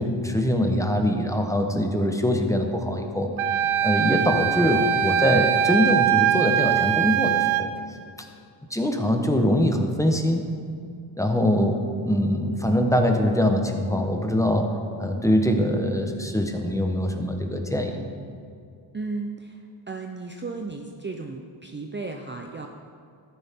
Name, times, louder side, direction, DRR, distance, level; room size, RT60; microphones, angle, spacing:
voice 1, 0.0-3.3 3.8-7.7 8.7-10.4 11.2-14.7 15.0-18.0, left 1 dB, 5° left, 4 dB, 1.0 m, -23 dB
Wind instrument woodwind instrument, 3.4-7.7, right 10 dB, 85° right, 0.6 m, -22 dB
voice 2, 18.9-22.7, right 3 dB, 25° right, 3 dB, 0.6 m, -34 dB
13.5 x 10.0 x 3.7 m, 2.4 s
cardioid pair, 95°, 48 cm